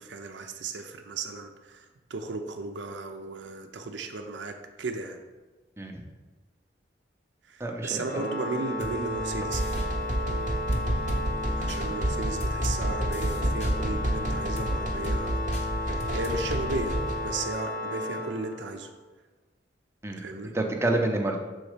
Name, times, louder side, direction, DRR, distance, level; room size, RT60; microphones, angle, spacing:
voice 1, 0.0-5.2 7.5-9.8 11.6-15.4 15.7-18.9 20.2-20.5, right 3 dB, 80° right, 4 dB, 0.6 m, -35 dB
voice 2, 7.6-8.0 20.0-20.2 20.5-21.4, right 2 dB, 15° right, 2 dB, 0.7 m, -27 dB
Organ, 8.1-19.0, left 1 dB, 55° left, 1.0 m, -33 dB
sound 1, 8.8-8.9 9.5-9.9 10.7-11.2 11.7-11.8 12.4-12.8 13.1-13.7 14.6-14.7 15.0-15.2 15.5-15.7 16.0-16.3, left 1 dB, 40° left, 1.0 m, -38 dB
sound 2, 9.2-17.3, right 1 dB, 45° right, 0.9 m, -30 dB
6.3 x 4.1 x 5.0 m, 1.2 s
head